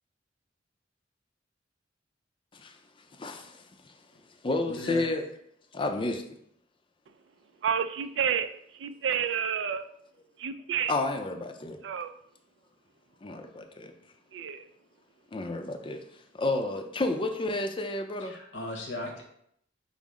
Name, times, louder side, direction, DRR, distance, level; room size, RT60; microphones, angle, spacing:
voice 1, 3.2-4.0 4.4-5.2 5.7-6.2 10.9-11.8 13.2-13.9 15.3-16.0 16.3-18.3, left 2 dB, 30° left, 5 dB, 0.5 m, -31 dB
voice 2, 4.7-5.0 18.2-19.2, left 1 dB, 75° left, 0 dB, 1.0 m, -37 dB
voice 3, 7.6-9.9 10.4-10.9 11.8-12.1 14.3-14.7, right 7 dB, 75° right, 10 dB, 0.4 m, -30 dB
5.5 x 2.0 x 4.8 m, 0.70 s
head